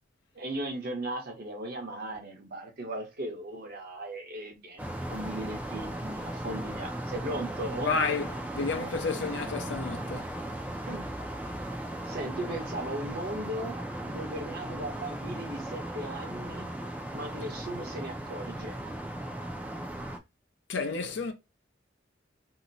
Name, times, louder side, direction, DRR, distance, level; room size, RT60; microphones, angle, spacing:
voice 1, 0.3-7.9 10.9-11.1 12.0-13.8 14.0-16.7 17.1-18.8, right 1 dB, 55° right, 0.9 m, -37 dB
sound 1, 4.8-20.2, right 1 dB, 10° right, 0.4 m, -37 dB
voice 2, 7.8-10.4 20.7-21.3, left 4 dB, 70° left, 0.6 m, -31 dB
2.8 x 2.0 x 3.9 m
head